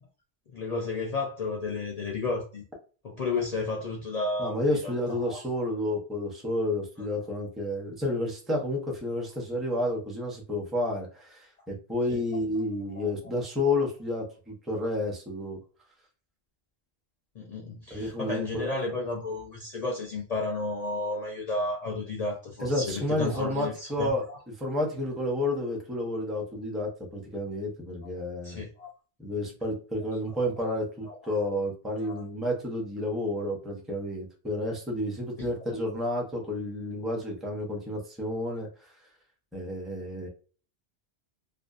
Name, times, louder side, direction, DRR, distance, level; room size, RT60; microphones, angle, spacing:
voice 1, 0.5-2.6 3.0-5.4 12.1-12.2 13.0-13.3 17.4-24.4 28.4-28.9 31.0-31.2 32.0-32.2 35.4-35.5, left 3 dB, 50° left, -1 dB, 0.5 m, -32 dB
voice 2, 4.4-15.6 17.9-18.7 22.6-24.2 24.6-28.6 29.2-39.0 39.5-40.3, left 1 dB, ahead, -1 dB, 0.6 m, -30 dB
2.6 x 2.3 x 2.3 m, 0.37 s
omnidirectional pair, 1.1 m